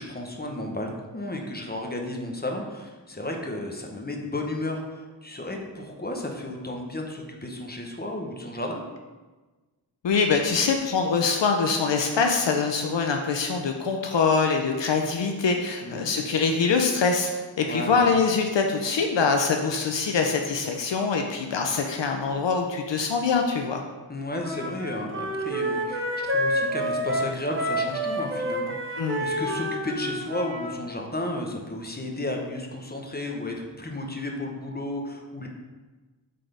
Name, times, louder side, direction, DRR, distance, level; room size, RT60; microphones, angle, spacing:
voice 1, 0.0-8.8 15.8-16.2 17.6-18.1 24.1-35.5, left 1 dB, 20° left, 1 dB, 1.1 m, -33 dB
voice 2, 10.0-17.3 17.6-23.8 29.0-29.2, left 5 dB, 75° left, 3 dB, 0.7 m, -24 dB
Wind instrument woodwind instrument, 24.4-30.7, equal, 30° right, 1.0 m, -28 dB
7.6 x 3.8 x 3.4 m, 1.3 s
cardioid pair, 45°, 44 cm